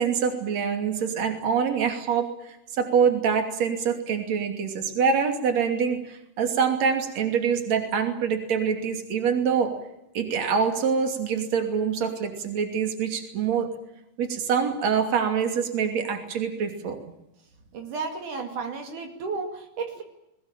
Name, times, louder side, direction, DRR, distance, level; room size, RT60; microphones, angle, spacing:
voice 1, 0.0-9.8 10.1-13.7 14.2-17.0, right 6 dB, 55° right, 5 dB, 3.9 m, -25 dB
voice 2, 17.7-20.0, right 4 dB, 75° right, 4 dB, 3.8 m, -33 dB
21.0 x 21.0 x 9.0 m, 0.86 s
omnidirectional pair, 3.6 m